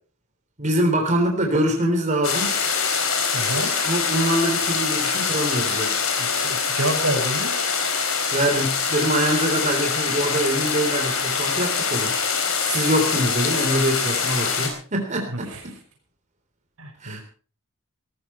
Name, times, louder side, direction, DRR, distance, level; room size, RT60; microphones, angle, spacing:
voice 1, 0.6-2.6 3.5-6.0 8.3-12.1 12.6-15.7 17.0-17.2, right 1 dB, 35° right, 2 dB, 3.5 m, -24 dB
sound 1, 2.2-14.7, left 5 dB, 75° left, 4.3 m, -24 dB
voice 2, 3.3-3.7 6.2-7.5 15.5-15.6 16.8-17.2, right 1 dB, 85° right, 3 dB, 5.5 m, -28 dB
18.0 x 14.5 x 4.5 m, 0.41 s
head